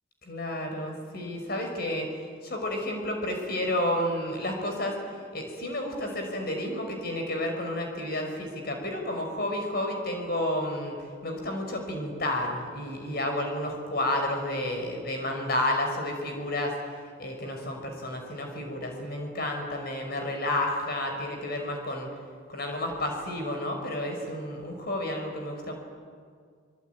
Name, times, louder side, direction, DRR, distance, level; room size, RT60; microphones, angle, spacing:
voice 1, 0.3-2.0 2.4-11.0 11.2-16.7 17.2-22.1 22.5-25.7, left 1 dB, 50° left, 3 dB, 5.5 m, -31 dB
24.5 x 22.0 x 9.5 m, 2.1 s
head